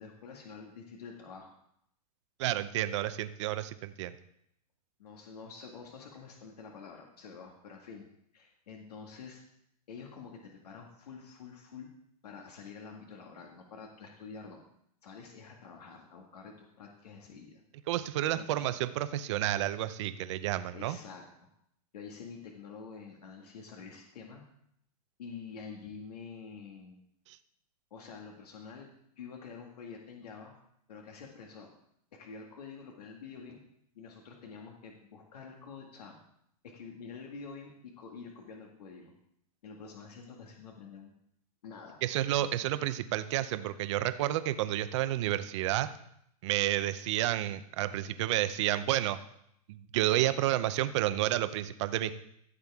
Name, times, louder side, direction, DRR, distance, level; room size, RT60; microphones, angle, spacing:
voice 1, 0.0-1.5 2.5-2.6 5.0-8.1 8.3-9.4 9.9-11.9 12.2-14.6 15.0-17.6 18.4-18.7 20.7-21.2 21.9-24.4 25.2-27.0 27.9-28.9 29.2-30.5 30.9-31.7 32.1-33.6 33.9-36.2 36.6-39.1 39.6-41.1 41.6-42.0 42.4-42.5, left 5 dB, 85° left, 1 dB, 1.9 m, -47 dB
voice 2, 2.4-4.1 17.9-21.0 27.3-27.4 42.0-45.9 46.4-49.2 49.7-52.1, right 14 dB, 50° right, 12 dB, 0.7 m, -30 dB
14.5 x 7.3 x 3.6 m, 0.73 s
supercardioid pair, 155°, 20 cm